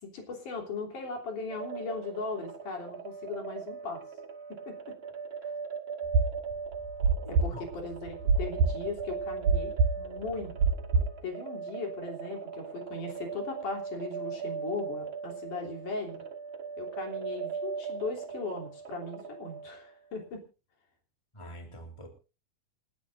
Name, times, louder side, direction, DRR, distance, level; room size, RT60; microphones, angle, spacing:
voice 1, 0.0-4.0 4.7-5.0 5.4-5.5 7.3-10.5 11.2-16.2 16.8-20.4, left 3 dB, 85° left, 1 dB, 4.9 m, -38 dB
sound 1, 1.5-19.9, right 5 dB, 65° right, 0.6 m, -39 dB
sound 2, 6.1-11.2, right 4 dB, 85° right, 3.6 m, -25 dB
voice 2, 7.2-7.6 21.3-22.1, equal, 10° left, 3 dB, 3.3 m, -45 dB
29.0 x 11.0 x 2.6 m, 0.32 s
omnidirectional pair, 3.5 m